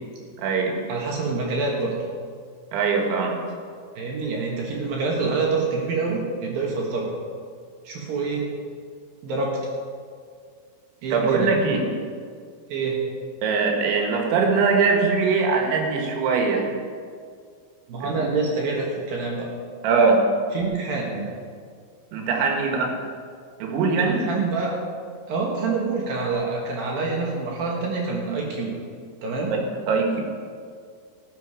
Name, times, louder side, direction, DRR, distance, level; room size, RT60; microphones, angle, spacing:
voice 1, 0.4-0.8 2.7-3.5 11.1-11.9 13.4-16.7 18.0-18.3 19.8-20.3 22.1-23.0 23.6-24.2 29.5-30.2, right 4 dB, 80° right, 1 dB, 3.9 m, -22 dB
voice 2, 0.9-2.0 4.0-7.1 7.8-8.5 9.2-9.6 11.0-11.5 12.7-13.0 17.9-19.5 20.5-21.3 24.0-24.7 25.3-28.7 29.2-29.6, right 4 dB, 60° right, -2 dB, 2.9 m, -26 dB
17.5 x 7.5 x 4.9 m, 2.1 s
omnidirectional pair, 5.2 m